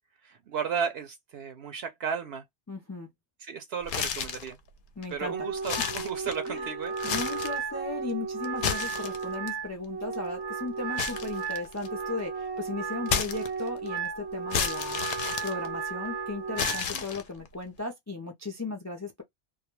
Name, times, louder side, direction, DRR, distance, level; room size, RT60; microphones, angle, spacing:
voice 1, 0.3-2.4 3.4-4.6 5.1-6.9 16.7-17.0, right 7 dB, 75° right, 0.8 m, -34 dB
voice 2, 2.7-3.1 5.0-5.5 6.5-6.7 7.0-19.2, left 3 dB, 30° left, 0.3 m, -36 dB
sound 1, 3.8-4.5 5.0-5.1 5.6-6.6 6.9-7.6 8.4-9.5 11.0-12.0 13.1-13.9 14.5-16.1 16.6-17.5, left 7 dB, 60° left, 0.6 m, -31 dB
Wind instrument woodwind instrument, 5.2-16.9, right 5 dB, 25° right, 0.6 m, -34 dB
2.2 x 2.2 x 3.0 m
omnidirectional pair, 1.1 m